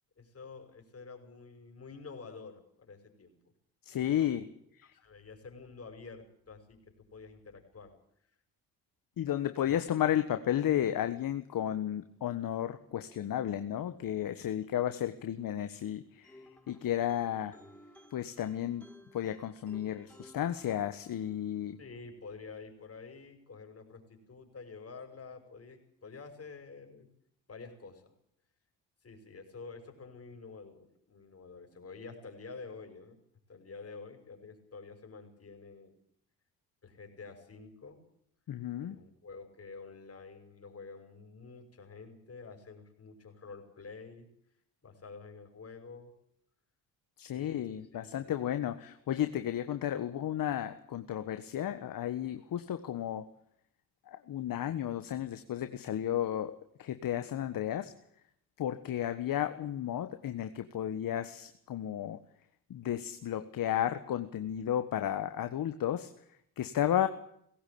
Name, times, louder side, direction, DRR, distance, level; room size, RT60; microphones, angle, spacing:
voice 1, 0.2-3.4 4.0-4.4 4.8-8.0 21.8-27.1 27.5-28.1 29.0-33.2 33.5-36.0 36.8-38.0 38.8-44.3 44.8-46.1 47.3-48.3, left 4 dB, 35° left, 5 dB, 5.9 m, -49 dB
voice 2, 3.8-4.5 4.8-4.9 9.2-17.6 18.1-18.8 19.1-21.8 38.5-39.0 47.2-53.3 54.1-56.5 56.8-57.9 58.6-62.2 62.7-66.1 66.6-67.1, left 11 dB, 55° left, 10 dB, 1.5 m, -33 dB
sound 1, 16.2-21.3, left 1 dB, 5° left, 6.3 m, -57 dB
19.5 x 17.0 x 8.6 m, 0.71 s
supercardioid pair, 65°, 40 cm